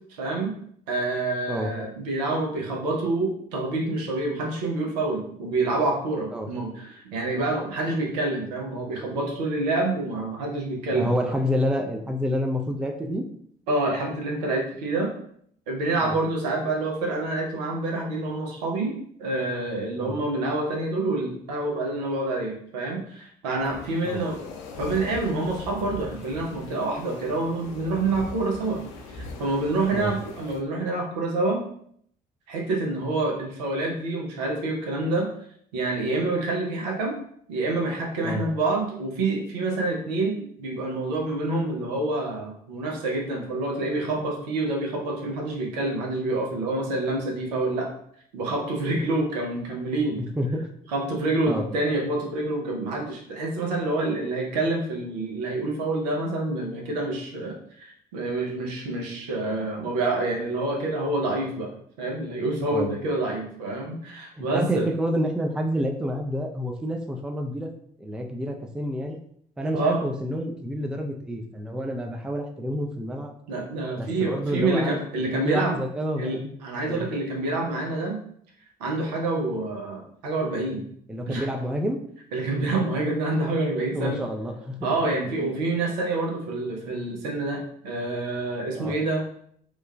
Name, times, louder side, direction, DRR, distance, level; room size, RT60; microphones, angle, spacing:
voice 1, 0.2-0.5 0.9-11.1 13.7-15.1 15.7-24.4 24.8-28.8 29.1-31.6 32.5-35.3 35.7-37.2 37.5-47.9 48.3-50.2 50.9-61.7 62.0-64.9 69.7-70.0 73.5-75.8 76.2-78.2 78.8-80.8 81.3-81.5 82.3-84.2 84.8-89.2, right 2 dB, 75° right, 0 dB, 0.6 m, -27 dB
voice 2, 10.9-13.2 16.0-16.2 20.0-20.2 24.1-24.3 29.9-30.1 38.2-38.4 50.2-50.7 51.5-51.7 62.7-62.9 64.4-67.7 68.0-69.2 69.6-73.4 74.0-76.5 76.8-77.1 81.1-82.0 83.9-84.9 85.4-85.5 88.8-89.0, equal, 5° right, 3 dB, 0.3 m, -28 dB
sound 1, 23.6-30.6, left 3 dB, 65° left, 0.5 m, -40 dB
3.0 x 2.2 x 2.2 m, 0.65 s
figure-of-eight pair, 50°, 21 cm